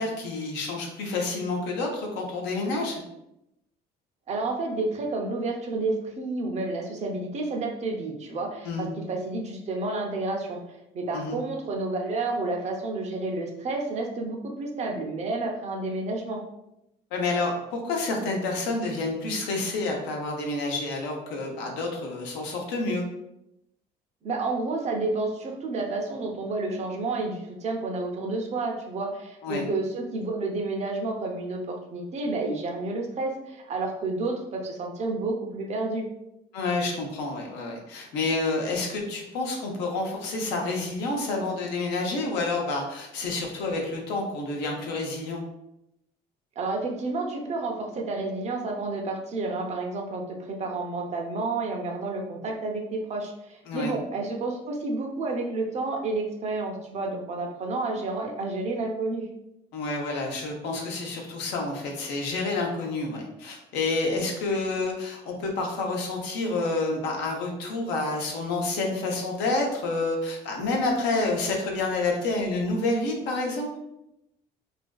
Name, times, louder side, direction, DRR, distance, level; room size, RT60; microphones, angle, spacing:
voice 1, 0.0-3.0 8.6-8.9 11.1-11.4 17.1-23.0 29.4-29.6 36.5-45.4 53.7-53.9 59.7-73.7, left 3 dB, 90° left, 1 dB, 0.6 m, -29 dB
voice 2, 4.3-10.6 10.9-16.4 24.2-36.1 46.6-59.2, right 3 dB, 40° right, 1 dB, 0.5 m, -30 dB
2.5 x 2.3 x 2.2 m, 0.85 s
cardioid pair, 110°, 17 cm